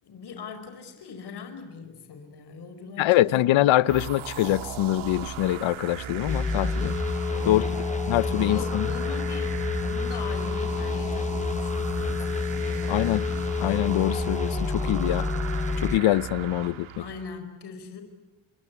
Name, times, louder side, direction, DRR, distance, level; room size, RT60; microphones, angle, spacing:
voice 1, 0.0-3.5 7.2-7.7 8.2-13.5 17.0-18.0, left 5 dB, 55° left, 5.2 m, -41 dB
voice 2, 3.0-7.0 7.5-7.6 8.1-8.9 12.9-13.2 13.6-15.3 15.8-16.9, left 14 dB, 75° left, 1.0 m, -24 dB
sound 1, 3.9-17.4, right 9 dB, 80° right, 2.4 m, -37 dB
sound 2, 6.3-16.0, left 4 dB, 15° left, 1.0 m, -28 dB
29.0 x 22.5 x 8.4 m
cardioid pair, 105°, 47 cm